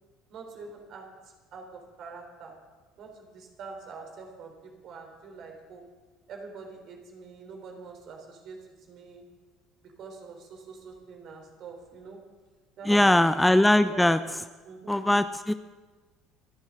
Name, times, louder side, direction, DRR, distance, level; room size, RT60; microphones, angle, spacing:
voice 1, 0.3-2.6 3.0-5.9 6.3-9.2 9.8-12.2 12.8-13.2 13.8-14.1 14.6-15.1, right 4 dB, 55° right, 2 dB, 3.7 m, -45 dB
voice 2, 12.8-14.2 14.9-15.5, left 1 dB, 5° left, 11 dB, 0.6 m, -21 dB
28.5 x 10.5 x 3.8 m, 1.3 s
hypercardioid pair, 60°, 0 cm